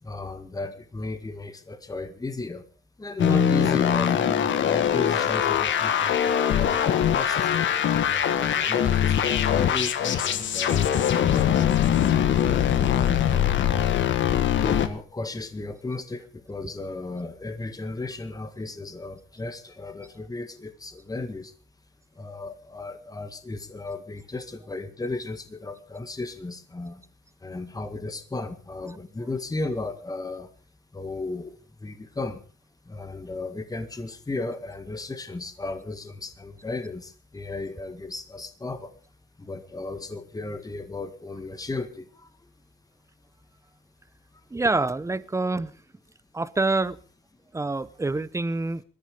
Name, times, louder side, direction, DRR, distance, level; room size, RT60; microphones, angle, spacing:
voice 1, 0.0-2.7 3.0-7.6 8.1-11.5 14.6-21.5 22.2-27.0 27.4-30.5 30.9-32.4 32.9-38.9 39.4-42.5, left 2 dB, 20° left, 9 dB, 1.9 m, -35 dB
sound 1, 3.2-14.9, left 9 dB, 70° left, 1.8 m, -22 dB
voice 2, 44.5-45.7 46.3-47.0 47.5-48.8, right 3 dB, 15° right, 18 dB, 0.9 m, -26 dB
20.0 x 13.5 x 5.0 m, 0.39 s
cardioid pair, 90°, 20 cm